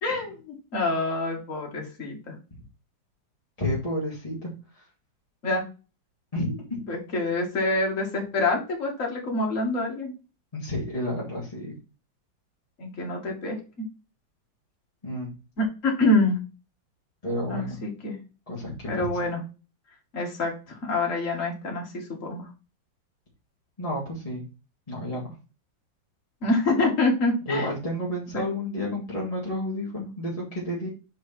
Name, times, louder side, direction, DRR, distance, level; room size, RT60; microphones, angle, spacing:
voice 1, 0.0-2.3 5.4-5.6 6.9-10.1 12.8-13.6 15.6-16.4 17.5-18.2 18.9-19.4 20.1-20.5 20.8-22.4 26.4-27.7 28.3-28.4, left 2 dB, 40° left, 0 dB, 2.3 m, -26 dB
voice 2, 3.6-4.8 6.3-6.8 10.5-11.7 15.0-15.3 17.2-17.8 18.5-19.1 23.8-24.4 24.9-25.3 27.5-30.9, left 1 dB, 20° left, -5 dB, 2.1 m, -31 dB
5.9 x 5.0 x 4.4 m, 0.32 s
omnidirectional pair, 2.1 m